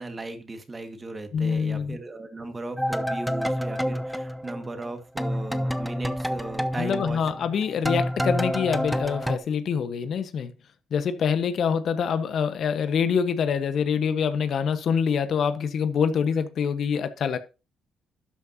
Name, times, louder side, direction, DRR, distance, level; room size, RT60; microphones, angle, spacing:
voice 1, 0.0-7.2, right 2 dB, 25° right, 1.9 m, -36 dB
voice 2, 1.3-2.0 6.8-10.5 10.9-17.4, left 7 dB, 65° left, 1.2 m, -25 dB
sound 1, 2.8-4.9 5.2-9.4, equal, ahead, 0.8 m, -28 dB
12.5 x 8.5 x 2.8 m
cardioid pair, 90°, 0 cm